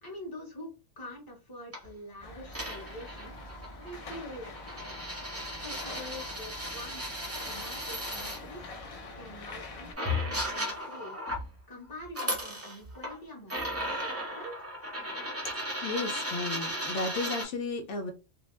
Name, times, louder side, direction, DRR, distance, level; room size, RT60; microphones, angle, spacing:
voice 1, 0.0-3.3 3.8-4.9 5.6-7.2 7.4-8.6 9.1-11.2 11.7-14.7, left 1 dB, 20° left, 0.9 m, -45 dB
sound 1, 1.7-1.9 2.5-8.4 9.5-9.6 10.0-11.5 12.0-13.2 13.5-17.5, equal, 15° right, 0.5 m, -36 dB
sound 2, 2.2-9.9, left 2 dB, 60° left, 0.3 m, -45 dB
voice 2, 15.4-18.1, left 3 dB, 75° left, 0.9 m, -34 dB
2.6 x 2.1 x 3.1 m
omnidirectional pair, 1.3 m